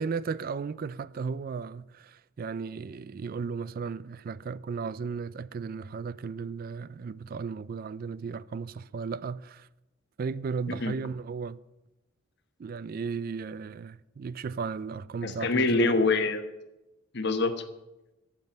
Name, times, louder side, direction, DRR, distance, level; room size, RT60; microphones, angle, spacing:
voice 1, 0.0-9.7 10.2-11.6 12.6-16.0, right 5 dB, 45° right, 0.3 m, -35 dB
voice 2, 15.2-16.5 17.1-17.6, left 3 dB, 55° left, 1.1 m, -25 dB
9.4 x 7.4 x 8.8 m
head